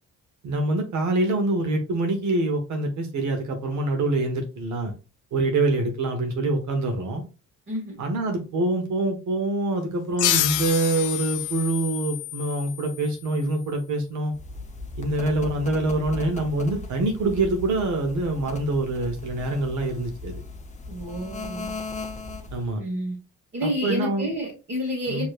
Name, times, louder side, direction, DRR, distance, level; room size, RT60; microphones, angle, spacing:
voice 1, 0.4-4.9 5.3-7.2 8.0-14.3 15.0-20.4 22.5-22.8 23.6-24.3 25.1-25.3, right 2 dB, 70° right, 4 dB, 1.1 m, -25 dB
voice 2, 7.7-8.0 20.9-21.7 22.7-23.1 23.5-25.3, equal, 35° right, -5 dB, 1.6 m, -29 dB
sound 1, 10.2-13.4, left 13 dB, 80° left, 0.5 m, -28 dB
sound 2, 14.3-22.7, left 3 dB, 25° left, 0.8 m, -37 dB
4.8 x 3.0 x 2.5 m, 0.32 s
cardioid pair, 90°, 30 cm